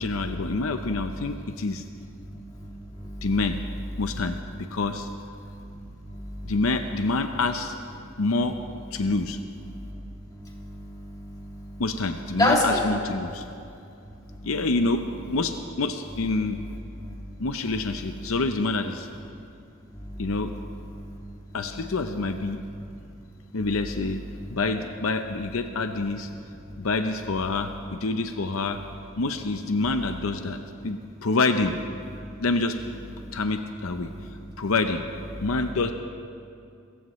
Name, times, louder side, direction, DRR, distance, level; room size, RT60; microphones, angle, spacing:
voice 1, 0.0-1.8 3.2-3.6 4.0-5.1 6.4-7.7 8.2-8.6 8.9-9.4 11.8-13.4 14.4-15.0 15.3-16.6 17.4-19.1 20.2-20.5 21.5-22.6 23.5-24.2 24.5-26.3 26.8-28.8 29.2-31.8 32.4-32.8 33.3-34.1 34.6-35.0 35.4-35.9, left 3 dB, 75° left, 7 dB, 0.7 m, -27 dB
voice 2, 2.2-3.3 5.4-6.5 9.7-10.0 10.3-11.8 12.4-12.8 14.3-14.5 17.0-17.1 19.9-20.2 20.9-21.2 33.2-33.4, left 1 dB, 20° left, -2 dB, 2.4 m, -30 dB
27.0 x 15.0 x 3.1 m, 2.5 s
head